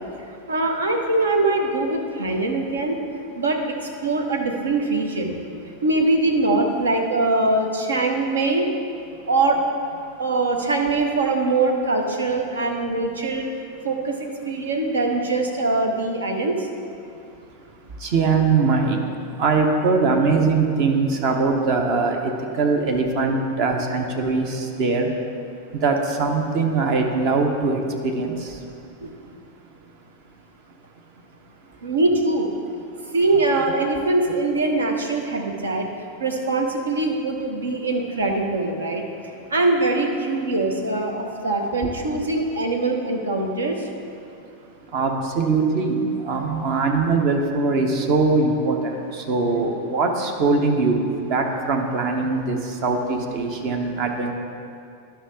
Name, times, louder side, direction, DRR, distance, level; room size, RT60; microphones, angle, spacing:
voice 1, 0.5-3.0 3.4-5.3 5.8-8.7 9.3-9.6 10.2-13.5 13.8-16.7 29.0-29.2 31.8-32.5 33.1-35.9 36.2-39.0 39.5-43.8, right 2 dB, 70° right, 2 dB, 0.9 m, -22 dB
voice 2, 18.0-19.0 19.4-25.1 25.8-28.5 44.9-54.3, right 4 dB, 45° right, 3 dB, 0.9 m, -22 dB
11.0 x 5.7 x 3.7 m, 2.5 s
figure-of-eight pair, 90°, 0 cm